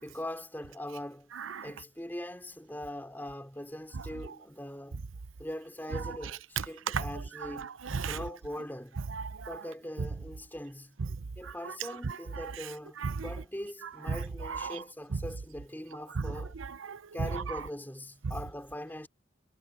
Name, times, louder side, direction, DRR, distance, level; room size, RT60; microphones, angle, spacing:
voice 1, 0.0-1.3 1.6-5.0 5.4-7.7 8.1-9.0 9.5-11.0 11.4-16.6 17.1-19.1, left 1 dB, 10° left, 3.4 m, -41 dB
voice 2, 1.4-1.7 3.9-4.3 5.9-6.2 6.6-7.1 7.4-8.2 9.1-9.5 10.0-10.1 11.0-11.1 11.4-11.7 12.0-12.5 13.0-13.3 14.1-14.8 15.1-15.2 16.2-17.4 18.2-18.3, right 5 dB, 80° right, 0.7 m, -35 dB
head